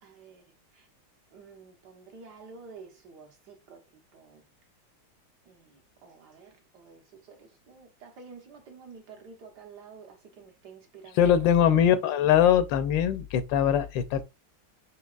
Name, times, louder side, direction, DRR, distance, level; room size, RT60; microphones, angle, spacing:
voice 1, 0.0-0.5 0.7-0.9 1.3-3.8 4.1-4.4 5.5-11.3, right 5 dB, 65° right, 1.6 m, -50 dB
voice 2, 11.2-14.2, left 9 dB, 85° left, 1.3 m, -22 dB
6.2 x 2.9 x 2.4 m
omnidirectional pair, 2.0 m